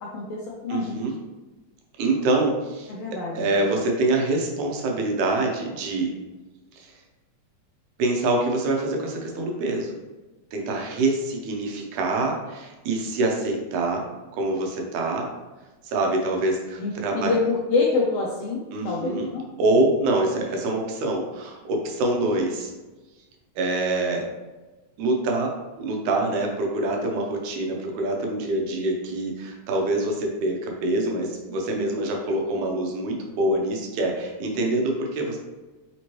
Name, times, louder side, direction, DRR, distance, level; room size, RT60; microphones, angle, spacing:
voice 1, 0.0-1.0 2.9-3.5 16.8-19.5, left 3 dB, 80° left, -3 dB, 1.4 m, -26 dB
voice 2, 0.7-1.1 2.0-2.9 3.4-6.1 6.7-6.9 8.0-10.0 10.5-14.0 14.3-15.3 15.8-17.3 18.7-19.3 19.6-22.7 23.6-24.2 25.0-25.5 25.8-35.4, right 2 dB, 85° right, 1 dB, 2.2 m, -25 dB
5.1 x 2.9 x 3.0 m, 1.2 s
omnidirectional pair, 3.4 m